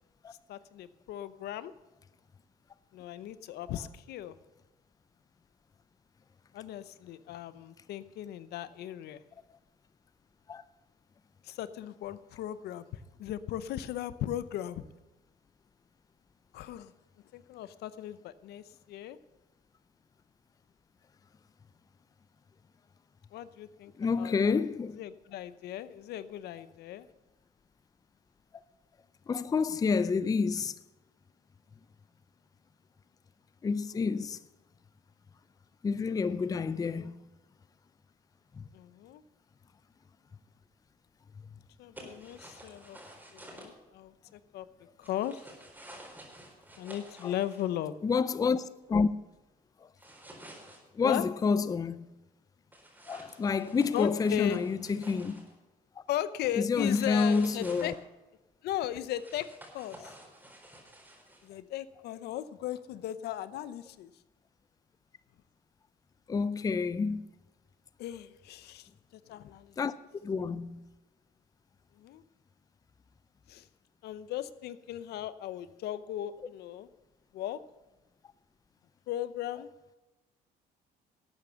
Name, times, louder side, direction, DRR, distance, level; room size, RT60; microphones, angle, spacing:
voice 1, 0.5-1.7 2.9-4.4 6.5-9.2 11.4-14.9 16.5-16.9 17.3-19.2 23.3-23.9 24.2-24.6 25.0-27.1 36.8-37.1 38.7-39.2 41.8-43.0 43.3-44.7 45.0-45.4 46.8-47.9 51.0-51.2 53.9-54.6 56.1-58.0 58.6-60.1 61.4-64.1 68.0-69.8 72.0-72.2 73.5-73.7 74.0-76.9 77.3-77.6 79.1-79.7, left 12 dB, 75° left, 0.7 m, -37 dB
voice 2, 24.0-25.0 29.3-30.8 33.6-34.4 35.8-37.2 38.5-38.6 47.2-47.3 48.0-49.1 50.9-52.1 53.1-55.5 56.6-57.9 66.3-67.2 69.8-69.9 70.2-70.8, left 5 dB, 20° left, 0.5 m, -29 dB
sound 1, 42.0-43.7 45.0-47.7 50.0-50.8 52.7-55.5 56.9-57.9 59.2-61.5, right 1 dB, 10° right, 4.2 m, -51 dB
12.5 x 8.6 x 6.8 m
cardioid pair, 110°, 17 cm